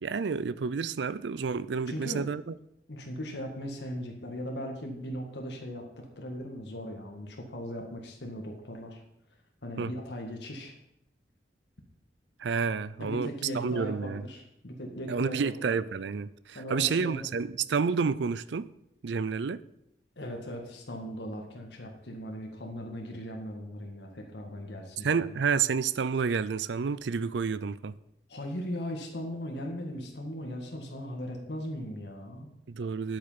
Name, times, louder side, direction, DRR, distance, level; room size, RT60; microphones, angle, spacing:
voice 1, 0.0-2.5 9.8-9.9 12.4-14.2 15.1-18.7 19.0-19.6 25.0-28.0 32.7-33.2, right 5 dB, 80° right, 0.4 m, -30 dB
voice 2, 1.9-2.3 2.9-9.0 9.6-10.7 13.0-15.7 16.5-17.2 20.1-25.4 28.3-32.5, equal, 75° left, 1.7 m, -38 dB
9.7 x 7.9 x 5.6 m
head